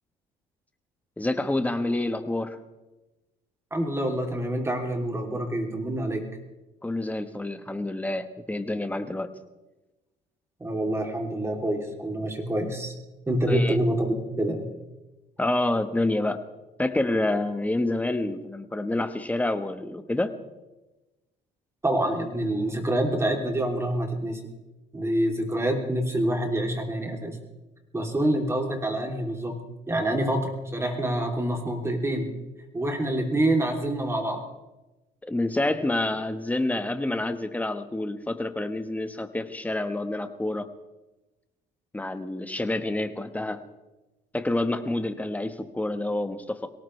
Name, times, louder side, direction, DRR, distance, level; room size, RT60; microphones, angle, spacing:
voice 1, 1.2-2.6 6.8-9.3 13.5-13.8 15.4-16.4 16.8-20.3 35.2-40.7 41.9-43.6 44.3-46.7, left 2 dB, 10° left, 9 dB, 1.2 m, -28 dB
voice 2, 3.7-6.2 10.6-12.9 13.3-14.1 14.4-14.7 21.8-24.4 24.9-27.4 27.9-29.6 29.9-32.3 32.7-34.4, right 1 dB, 15° right, 2 dB, 3.0 m, -26 dB
23.0 x 18.0 x 3.3 m, 1.1 s
cardioid pair, 110°, 17 cm